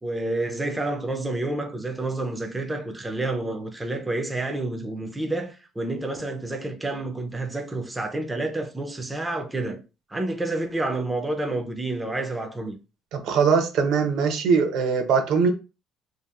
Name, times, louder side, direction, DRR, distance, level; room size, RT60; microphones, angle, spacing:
voice 1, 0.0-9.8 10.1-12.7, right 2 dB, 10° right, 0.4 m, -29 dB
voice 2, 13.1-15.5, right 5 dB, 70° right, 0.5 m, -21 dB
2.7 x 2.4 x 2.3 m
cardioid pair, 130°, 0 cm